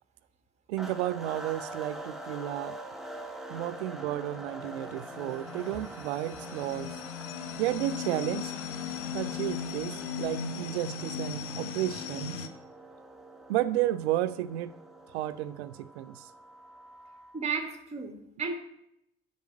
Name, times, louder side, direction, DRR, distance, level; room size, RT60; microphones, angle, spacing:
voice 1, 0.7-2.8 3.5-6.9 7.6-8.5 9.1-12.5 13.5-14.7 15.1-16.3, right 13 dB, 65° right, 16 dB, 0.5 m, -32 dB
sound 1, 0.8-17.5, right 1 dB, ahead, 1.2 m, -45 dB
sound 2, 4.1-12.5, left 7 dB, 60° left, 1.0 m, -38 dB
voice 2, 17.3-18.6, right 5 dB, 20° right, 5 dB, 1.5 m, -34 dB
8.1 x 6.4 x 7.5 m, 0.79 s
figure-of-eight pair, 50°, 35 cm